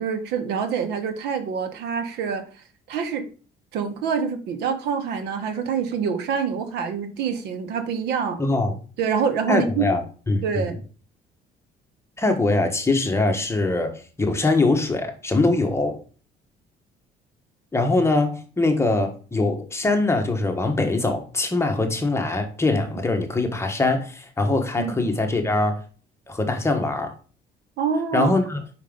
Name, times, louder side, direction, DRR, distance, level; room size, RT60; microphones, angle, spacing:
voice 1, 0.0-2.5 2.9-3.2 3.7-8.4 9.0-9.9 10.4-10.8 24.8-25.0 27.8-28.3, right 6 dB, 80° right, 8 dB, 1.1 m, -26 dB
voice 2, 8.4-8.7 9.5-10.0 10.3-10.7 12.2-16.0 17.7-25.7 26.3-27.1 28.1-28.6, left 2 dB, 15° left, 4 dB, 1.3 m, -22 dB
5.3 x 5.1 x 3.8 m, 0.37 s
cardioid pair, 110°, 17 cm